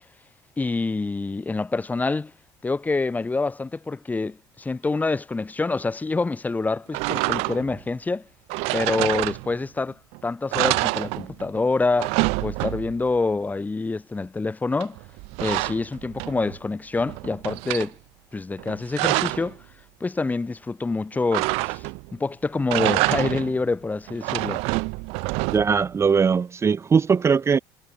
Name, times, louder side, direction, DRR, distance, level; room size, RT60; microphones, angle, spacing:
voice 1, 0.6-2.3 2.6-8.2 8.7-15.0 15.4-18.0 18.3-19.6 20.0-21.9 22.1-24.6, left 3 dB, 15° left, 3.7 m, -26 dB
sound 1, 6.9-7.8 8.5-9.8 10.1-10.2 10.5-11.6 11.8-13.1 14.8-16.6 17.0-17.9 18.6-19.5 21.3-22.1 22.6-23.6 24.1-25.9, right 29 dB, 80° right, 2.4 m, -27 dB
voice 2, 25.5-27.6, right 6 dB, 25° right, 1.3 m, -20 dB
cardioid pair, 115°, 10 cm